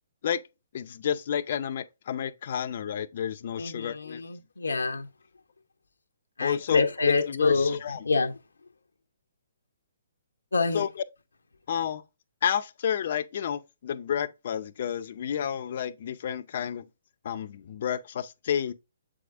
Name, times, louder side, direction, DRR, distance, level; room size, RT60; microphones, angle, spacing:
voice 1, 0.7-4.2 6.4-6.8 7.3-8.0 10.7-10.9 11.7-12.0 12.4-16.8 17.2-18.7, left 8 dB, 50° left, 0.6 m, -30 dB
voice 2, 3.6-5.1 6.4-7.8 8.0-8.3 10.5-10.8, left 4 dB, 85° left, 0.8 m, -26 dB
7.6 x 4.9 x 2.5 m
figure-of-eight pair, 135°, 0 cm